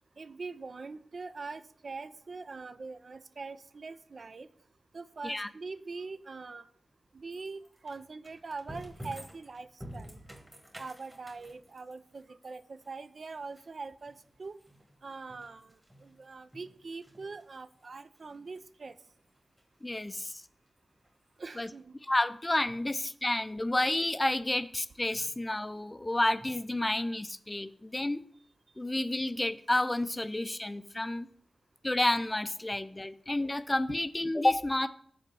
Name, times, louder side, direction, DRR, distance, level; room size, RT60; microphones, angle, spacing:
voice 1, 0.2-4.5 4.9-6.7 7.1-9.7 9.9-10.2 10.8-14.6 15.0-19.0 21.4-21.9, right 4 dB, 60° right, 13 dB, 0.3 m, -43 dB
sound 1, 7.3-16.2 16.5-18.0 18.3-18.6 19.1-19.2 19.6-19.7 19.9-20.0 21.0-21.1 21.4-21.5, equal, 15° right, 1.2 m, -49 dB
voice 2, 19.8-20.4 21.6-21.7 22.1-28.2 28.8-31.3 31.8-34.9, left 1 dB, 20° left, 13 dB, 0.4 m, -30 dB
5.1 x 4.2 x 5.4 m, 0.63 s
cardioid pair, 60°, 0 cm